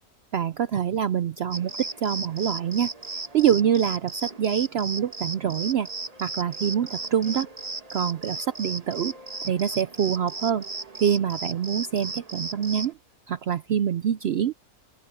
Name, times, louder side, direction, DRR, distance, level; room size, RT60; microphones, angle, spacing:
voice 1, 0.3-2.9 3.3-5.9 6.2-7.5 7.9-9.1 9.4-10.6 11.0-12.9 13.3-14.5, right 9 dB, 70° right, 0.6 m, -25 dB
sound 1, 1.5-12.9, right 3 dB, 25° right, 1.4 m, -36 dB
open air
omnidirectional pair, 1.6 m